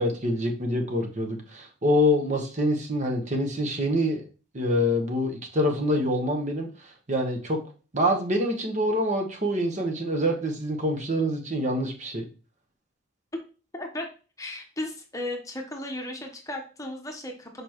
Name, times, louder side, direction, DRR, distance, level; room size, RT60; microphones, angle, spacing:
voice 1, 0.0-4.2 4.5-7.6 7.9-12.2, equal, 40° right, 3 dB, 1.2 m, -26 dB
voice 2, 13.7-14.1 14.4-17.6, left 1 dB, 15° left, 3 dB, 1.0 m, -35 dB
6.9 x 4.9 x 3.0 m, 0.35 s
head